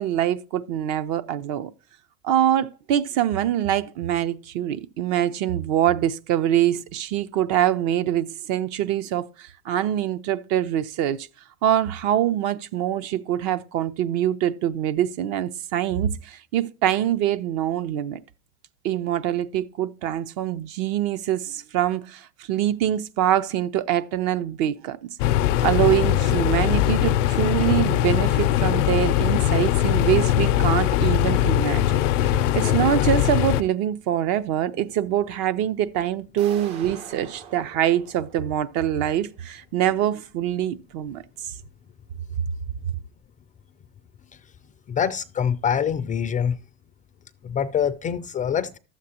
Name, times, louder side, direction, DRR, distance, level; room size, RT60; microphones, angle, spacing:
voice 1, 0.0-1.7 2.2-11.3 11.6-18.2 18.8-25.0 25.6-41.2, right 11 dB, 55° right, 0.7 m, -24 dB
sound 1, 25.2-33.6, left 13 dB, 85° left, 0.6 m, -21 dB
sound 2, 36.4-39.2, right 7 dB, 70° right, 1.5 m, -44 dB
voice 2, 44.9-46.6 47.4-48.8, left 8 dB, 25° left, 0.3 m, -25 dB
12.0 x 7.4 x 2.9 m
supercardioid pair, 115°, 36 cm